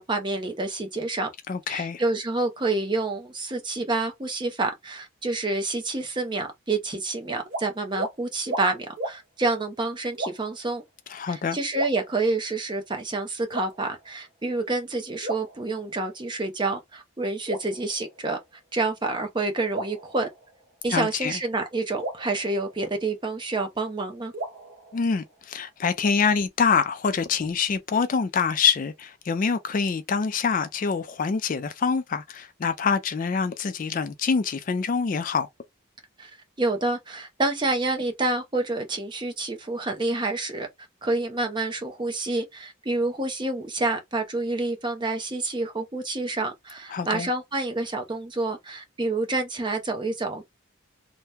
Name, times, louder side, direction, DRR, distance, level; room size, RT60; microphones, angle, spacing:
voice 1, 0.0-1.3 1.7-10.8 11.3-18.4 18.7-20.3 20.8-24.3 36.2-40.7 41.0-50.5, right 2 dB, 20° right, 0.6 m, -28 dB
voice 2, 1.5-2.0 11.1-11.6 20.9-21.3 24.9-35.5 46.9-47.3, left 5 dB, 40° left, 0.3 m, -25 dB
sound 1, 7.5-7.6 7.9-8.1 8.5-8.7 9.0-9.2 10.1-10.6 11.7-12.6 13.5-14.2 15.2-16.2 17.5-18.6 19.7-20.9 22.0-23.4 24.3-25.5, right 2 dB, 45° right, 1.0 m, -36 dB
2.8 x 2.1 x 3.4 m
head